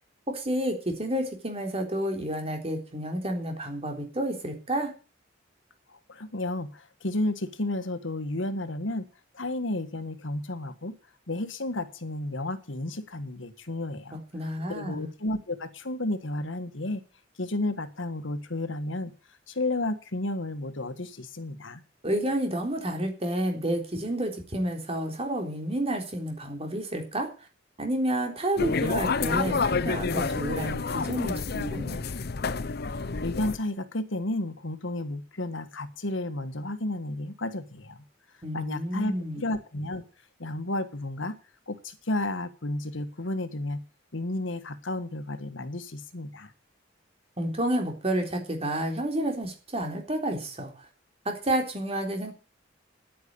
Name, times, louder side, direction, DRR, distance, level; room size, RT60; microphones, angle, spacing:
voice 1, 0.3-4.9 14.1-15.1 22.0-27.3 27.8-32.0 38.4-39.4 47.4-50.7 51.3-52.3, right 1 dB, 30° right, 3 dB, 3.7 m, -30 dB
voice 2, 6.1-9.1 9.3-11.0 11.3-14.2 14.7-17.0 17.4-19.1 19.5-21.8 33.2-38.0 38.5-40.0 40.4-41.4 41.7-43.8 44.1-46.5, left 1 dB, 80° left, 10 dB, 1.6 m, -32 dB
sound 1, 28.6-33.6, left 4 dB, 55° left, 0.7 m, -29 dB
10.0 x 9.5 x 8.4 m, 0.35 s
head